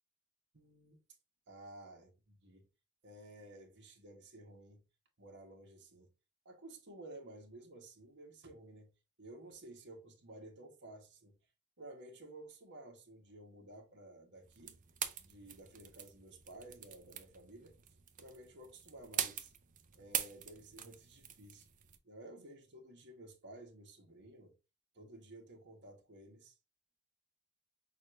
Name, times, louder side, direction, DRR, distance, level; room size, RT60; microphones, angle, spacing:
voice 1, 0.5-1.0 1.5-2.7 3.0-4.8 5.2-6.1 6.4-8.9 9.2-11.3 11.8-14.8 15.2-17.8 18.2-19.5 19.9-21.7 22.0-24.5 24.9-26.6, right 1 dB, 55° right, 1.3 m, -54 dB
sound 1, 14.4-22.0, right 9 dB, 40° right, 0.5 m, -44 dB
6.3 x 2.5 x 3.1 m
head